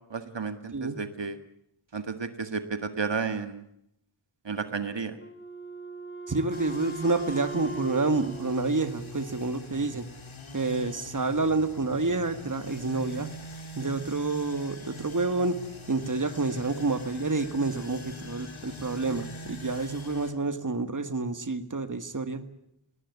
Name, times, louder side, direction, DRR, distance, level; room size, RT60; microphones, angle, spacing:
voice 1, 0.1-1.4 1.9-3.6 4.4-5.2, right 5 dB, 60° right, 9 dB, 1.7 m, -32 dB
Wind instrument woodwind instrument, 5.2-9.7, right 3 dB, 25° left, 3.5 m, -41 dB
voice 2, 6.3-10.0 10.5-13.3 13.8-15.6 15.9-22.4, right 3 dB, 40° right, 10 dB, 1.8 m, -28 dB
sound 1, 6.5-20.3, left 1 dB, 70° left, 2.8 m, -43 dB
20.0 x 19.0 x 9.6 m, 0.75 s
wide cardioid pair, 50°, 49 cm